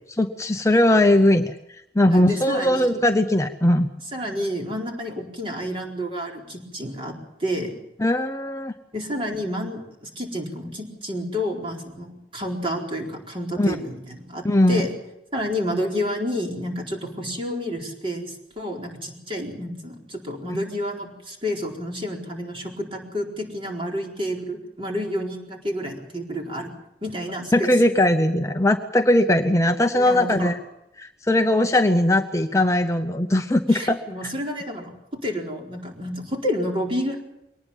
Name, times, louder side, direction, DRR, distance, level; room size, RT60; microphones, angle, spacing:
voice 1, 0.2-3.9 8.0-8.7 13.6-13.8 14.4-14.8 27.5-30.6 31.0-34.0, left 1 dB, 15° left, 6 dB, 0.8 m, -20 dB
voice 2, 2.1-3.0 4.1-7.8 8.9-14.9 15.3-26.7 27.0-27.7 29.9-30.5 33.7-34.9 35.2-37.2, equal, 30° right, 1 dB, 4.4 m, -30 dB
23.0 x 19.0 x 7.2 m, 0.84 s
head